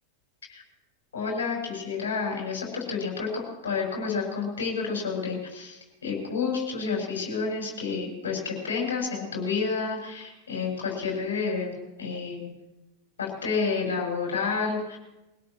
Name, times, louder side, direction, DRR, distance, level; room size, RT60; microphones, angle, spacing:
voice 1, 1.1-12.5 13.2-15.0, left 5 dB, 65° left, -1 dB, 6.8 m, -30 dB
24.5 x 17.5 x 3.2 m, 1.0 s
figure-of-eight pair, 90°, 0 cm